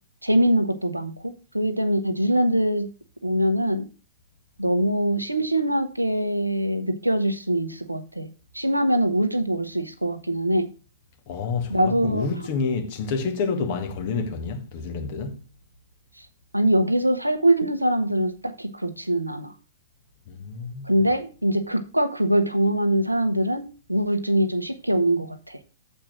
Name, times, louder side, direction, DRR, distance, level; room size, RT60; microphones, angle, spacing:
voice 1, 0.2-2.9 3.2-3.8 4.6-8.3 8.5-10.7 11.7-12.3 13.6-13.7 16.5-19.5 20.8-23.6 23.9-25.6, right 1 dB, 85° right, 1.0 m, -23 dB
voice 2, 11.3-15.5 20.3-20.9, left 5 dB, 40° left, 1.6 m, -28 dB
7.5 x 4.5 x 6.1 m
figure-of-eight pair, 110°, 0 cm